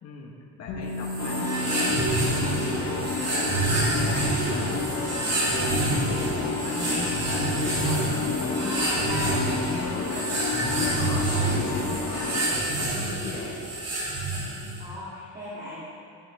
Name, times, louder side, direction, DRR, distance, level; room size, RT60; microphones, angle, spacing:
voice 1, 0.0-13.6, left 4 dB, 40° left, -3 dB, 1.5 m, -39 dB
sound 1, 0.7-12.5, right 3 dB, 85° left, 2.2 m, -41 dB
sound 2, 1.0-14.8, right 2 dB, 40° right, 2.8 m, -28 dB
sound 3, 1.2-12.5, left 4 dB, 65° left, 1.6 m, -31 dB
voice 2, 8.6-9.4 14.8-15.8, left 1 dB, 25° right, -9 dB, 2.6 m, -36 dB
14.5 x 10.5 x 3.5 m, 2.3 s
cardioid pair, 135°, 38 cm